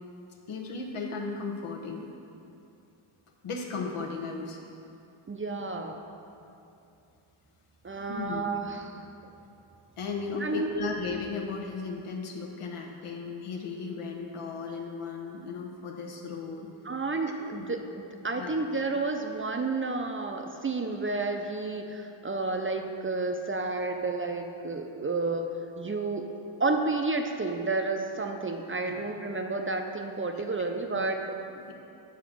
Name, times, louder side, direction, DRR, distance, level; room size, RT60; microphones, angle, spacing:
voice 1, 0.5-2.1 3.4-4.6 8.1-8.4 10.0-16.7 17.3-17.4 18.4-18.6 28.9-29.0 31.6-31.7, left 4 dB, 85° left, 1 dB, 1.0 m, -35 dB
voice 2, 5.3-6.0 7.8-9.3 10.4-10.9 16.8-26.3 26.6-31.4, right 3 dB, 25° right, 4 dB, 0.5 m, -31 dB
7.1 x 3.7 x 6.0 m, 2.7 s
cardioid pair, 70°, 50 cm